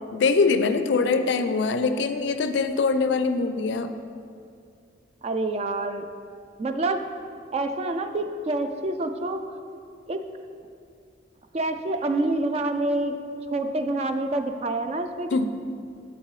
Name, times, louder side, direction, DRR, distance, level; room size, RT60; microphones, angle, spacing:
voice 1, 0.1-3.9 15.3-15.4, left 4 dB, 70° left, 9 dB, 0.4 m, -23 dB
voice 2, 5.2-6.0 6.6-7.1 7.5-9.5 10.1-10.2 11.5-13.2 13.5-15.4, right 2 dB, 35° right, 7 dB, 0.3 m, -27 dB
7.5 x 6.9 x 3.1 m, 2.4 s
head